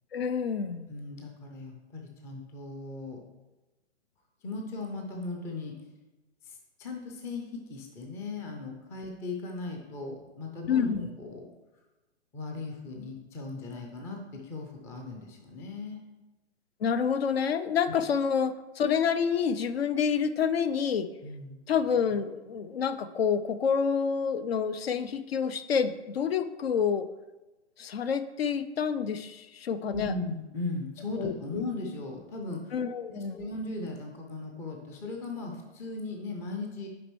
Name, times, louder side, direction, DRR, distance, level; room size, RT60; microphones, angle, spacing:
voice 1, 0.1-0.9 10.7-11.0 16.8-21.1 21.7-27.1 27.8-30.1 31.2-31.6 32.7-33.5, left 6 dB, 60° left, 12 dB, 0.5 m, -28 dB
voice 2, 0.9-3.2 4.4-5.7 6.4-11.5 12.3-16.0 21.2-21.6 29.9-32.7 33.1-36.9, left 3 dB, 10° left, 2 dB, 0.4 m, -37 dB
8.6 x 5.3 x 3.1 m, 1.1 s
figure-of-eight pair, 120°, 35 cm